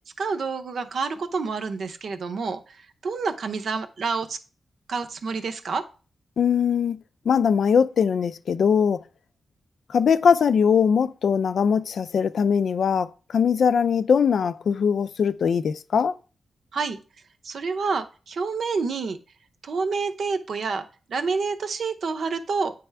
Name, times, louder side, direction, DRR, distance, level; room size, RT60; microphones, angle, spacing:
voice 1, 0.2-2.8 3.0-4.4 4.9-5.8 16.7-17.0 17.4-19.2 19.6-22.7, right 4 dB, 65° right, 0.7 m, -28 dB
voice 2, 6.4-7.0 7.3-9.0 9.9-16.2, left 6 dB, 70° left, 0.3 m, -21 dB
9.0 x 3.4 x 3.4 m
cardioid pair, 75°, 0 cm